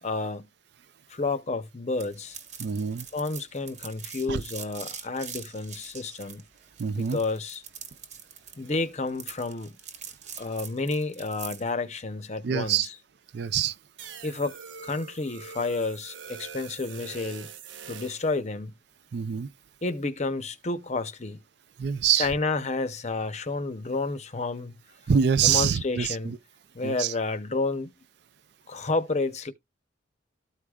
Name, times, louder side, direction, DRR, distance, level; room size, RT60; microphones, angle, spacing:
voice 1, 0.0-0.5 1.1-2.4 3.1-6.5 6.9-7.6 8.6-9.8 10.4-12.9 14.2-14.5 14.8-17.5 17.9-18.8 19.8-21.4 22.2-24.8 25.4-26.3 26.7-27.9 28.7-29.5, left 3 dB, 35° left, 0.7 m, -30 dB
sound 1, 2.0-11.7, right 7 dB, 35° right, 1.2 m, -43 dB
voice 2, 2.6-3.1 4.3-4.4 6.8-7.2 12.4-12.9 13.3-13.7 19.1-19.5 21.8-22.3 25.1-26.4 26.8-27.1, right 7 dB, 55° right, 0.4 m, -25 dB
sound 2, 14.0-18.4, right 6 dB, 75° right, 0.8 m, -43 dB
13.5 x 4.8 x 2.3 m
head